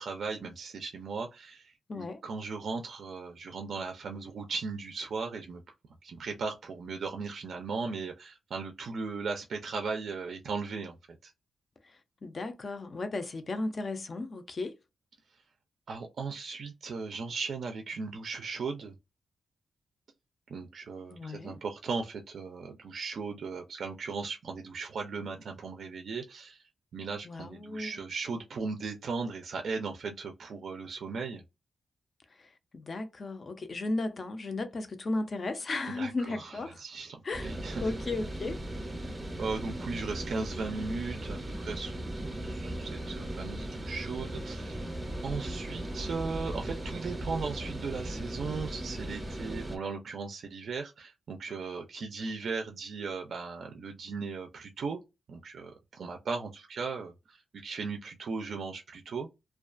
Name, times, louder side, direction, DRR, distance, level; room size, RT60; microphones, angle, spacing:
voice 1, 0.0-5.6 6.0-11.0 11.2-11.3 15.9-19.0 20.5-26.6 26.9-31.4 35.9-37.9 39.4-44.8 45.2-55.0 55.3-59.3, right 4 dB, 65° right, 0.4 m, -37 dB
voice 2, 1.9-2.2 12.2-14.7 21.1-21.5 27.2-28.0 32.7-36.8 37.2-37.5 37.8-38.6, left 2 dB, 40° left, 0.4 m, -35 dB
sound 1, 37.3-49.8, right 1 dB, 15° right, 0.5 m, -37 dB
2.3 x 2.2 x 2.4 m
wide cardioid pair, 145°, 0 cm